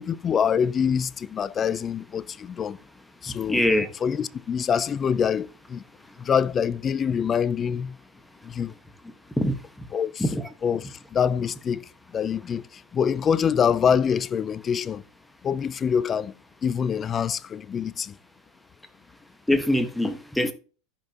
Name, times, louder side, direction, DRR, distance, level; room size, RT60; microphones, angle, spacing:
voice 1, 0.0-2.8 3.2-3.6 4.0-5.8 6.2-8.0 8.4-8.7 9.9-10.2 10.6-15.0 15.4-16.3 16.6-18.1, left 7 dB, 30° left, 0.5 m, -25 dB
voice 2, 3.5-3.9 9.4-9.6 10.2-10.4 19.5-20.5, left 1 dB, 5° left, 1.4 m, -23 dB
14.5 x 5.4 x 2.9 m
hypercardioid pair, 85°, 0 cm